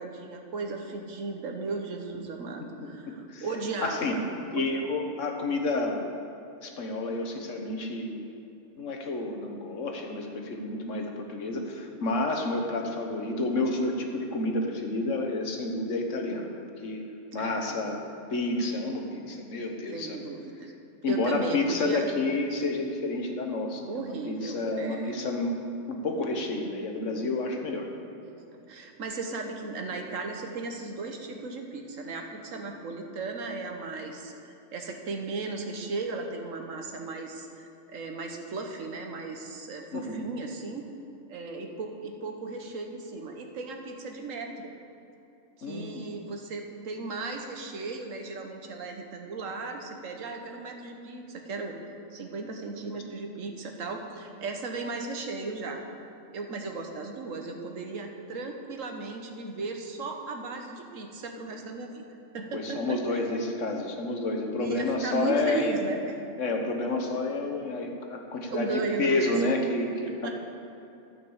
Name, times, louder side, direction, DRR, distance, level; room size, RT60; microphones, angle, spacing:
voice 1, 0.0-4.2 4.5-4.7 17.3-17.7 19.9-20.7 21.0-22.1 23.9-25.2 28.2-28.4 28.7-40.9 41.3-44.7 45.6-51.8 52.1-55.8 56.3-62.0 62.3-63.2 64.6-66.1 68.5-69.4 70.2-70.3, right 3 dB, 80° right, 3 dB, 1.5 m, -36 dB
voice 2, 2.8-3.4 3.8-4.2 4.5-6.0 6.6-8.2 8.8-17.0 17.3-18.0 18.3-20.2 21.0-25.6 25.9-27.9 39.9-40.3 45.6-46.0 62.5-65.7 66.4-70.3, left 2 dB, 70° left, 2 dB, 1.5 m, -30 dB
12.5 x 5.9 x 7.1 m, 2.8 s
omnidirectional pair, 1.3 m